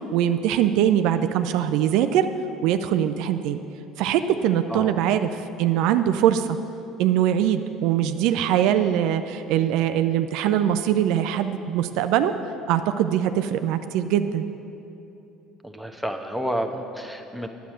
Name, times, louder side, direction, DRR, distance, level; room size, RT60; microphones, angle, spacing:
voice 1, 0.0-2.3 2.6-3.6 4.0-5.3 5.6-6.5 7.0-12.3 12.7-14.4, right 10 dB, 70° right, 9 dB, 0.4 m, -22 dB
voice 2, 4.7-5.3 15.6-17.5, equal, 5° left, 6 dB, 1.0 m, -30 dB
10.0 x 8.0 x 6.2 m, 2.9 s
hypercardioid pair, 65°, 0 cm